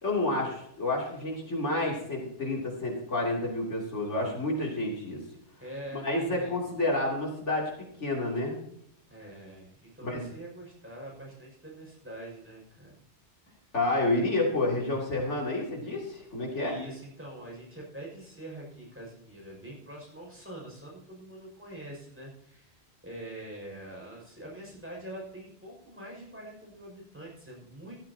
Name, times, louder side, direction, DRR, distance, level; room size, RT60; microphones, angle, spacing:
voice 1, 0.0-5.2 5.9-8.6 10.0-10.2 13.7-16.8, left 2 dB, 80° left, -2 dB, 3.5 m, -29 dB
voice 2, 5.6-6.5 9.1-13.0 16.5-28.0, right 1 dB, 10° right, -2 dB, 6.1 m, -44 dB
15.5 x 14.0 x 2.9 m, 0.72 s
omnidirectional pair, 1.2 m